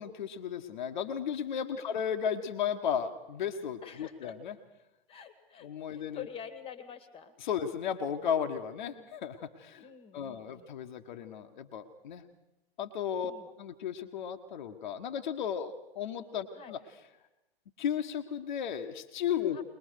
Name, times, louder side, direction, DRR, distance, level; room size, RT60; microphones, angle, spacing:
voice 1, 0.0-4.5 5.6-6.2 7.4-9.8 10.1-12.2 12.8-13.3 13.6-16.8 17.8-19.6, left 8 dB, 50° left, 5 dB, 1.4 m, -34 dB
voice 2, 3.8-4.4 5.1-7.3 8.8-9.1 9.8-10.7 13.2-13.5 16.5-16.7 19.5-19.6, left 8 dB, 20° left, 11 dB, 1.9 m, -47 dB
21.5 x 21.0 x 6.5 m, 0.99 s
figure-of-eight pair, 110°, 30 cm